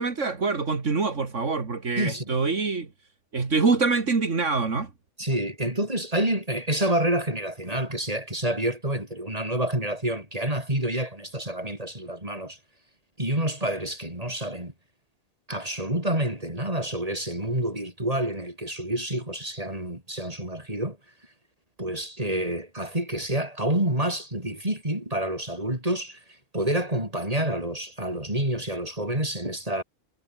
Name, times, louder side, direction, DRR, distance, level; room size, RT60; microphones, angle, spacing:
voice 1, 0.0-2.9 3.3-4.9, right 4 dB, 75° right, 2.7 m, -25 dB
voice 2, 2.0-2.4 5.2-12.6 13.2-14.7 15.5-21.0 21.8-26.2 26.5-29.8, right 1 dB, 30° right, 6.8 m, -28 dB
omnidirectional pair, 1.3 m